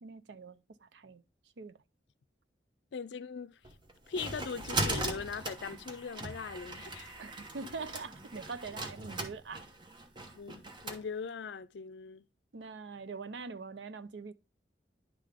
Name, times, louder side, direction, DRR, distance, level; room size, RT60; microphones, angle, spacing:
voice 1, 0.0-1.2 1.6-1.7 7.1-9.6 12.5-14.3, right 4 dB, 80° right, 0.6 m, -43 dB
voice 2, 2.9-3.6 4.1-7.1 10.4-12.2, left 5 dB, 75° left, 0.4 m, -40 dB
sound 1, 3.6-11.0, right 2 dB, 25° right, 1.0 m, -39 dB
10.5 x 3.8 x 3.5 m
head